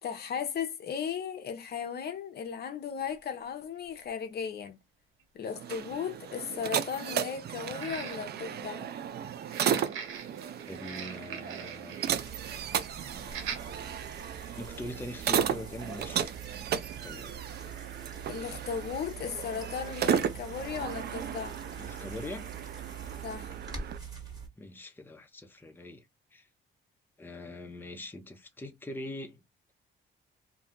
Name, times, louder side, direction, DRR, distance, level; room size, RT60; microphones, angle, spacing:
voice 1, 0.0-4.8 5.3-8.9 18.3-21.6 23.2-23.5, left 7 dB, 55° left, 0.6 m, -36 dB
sound 1, 3.0-3.1 4.1-4.2 4.6-4.7 7.7-8.5 9.4-12.2 12.5-12.7 13.3-13.6 14.2-14.3, right 7 dB, 85° right, 0.8 m, -42 dB
sound 2, 5.5-24.0, right 9 dB, 55° right, 0.4 m, -35 dB
voice 2, 10.7-12.0 14.6-16.3 17.0-17.3 21.8-22.5 24.6-26.1 26.3-26.5 27.2-29.4, left 1 dB, 10° left, 0.6 m, -42 dB
sound 3, 12.1-24.5, right 6 dB, 20° right, 1.6 m, -44 dB
2.6 x 2.2 x 3.6 m
cardioid pair, 90°, 20 cm